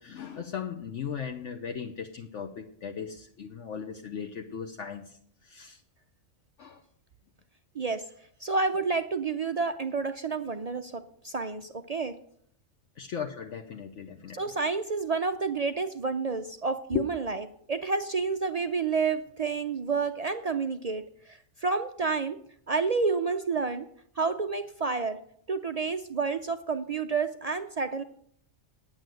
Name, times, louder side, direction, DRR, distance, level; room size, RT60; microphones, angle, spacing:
voice 1, 0.0-5.8 6.6-6.8 13.0-14.4 16.9-17.0, left 7 dB, 65° left, 4 dB, 1.1 m, -37 dB
voice 2, 7.8-8.1 8.4-12.1 14.3-22.4 22.7-23.9 24.2-25.2 25.5-28.0, right 4 dB, 65° right, 8 dB, 0.4 m, -29 dB
9.3 x 8.7 x 7.7 m, 0.67 s
omnidirectional pair, 1.4 m